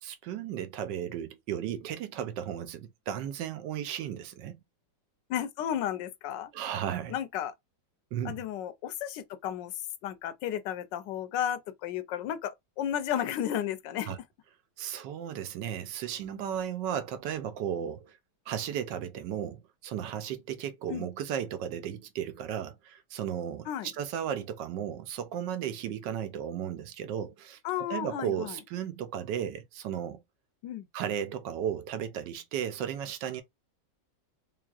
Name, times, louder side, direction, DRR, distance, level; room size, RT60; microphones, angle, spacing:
voice 1, 0.0-4.6 6.5-7.1 8.1-8.4 14.1-14.2 14.8-18.2 18.5-23.7 23.9-27.6 27.9-30.2 30.9-33.4, right 9 dB, 85° right, 1.3 m, -35 dB
voice 2, 5.3-6.5 7.1-7.5 8.2-9.7 10.0-14.1 20.9-21.1 23.7-23.9 27.6-28.6 30.6-30.9, left 10 dB, 90° left, 1.3 m, -33 dB
3.7 x 3.3 x 2.4 m
omnidirectional pair, 1.9 m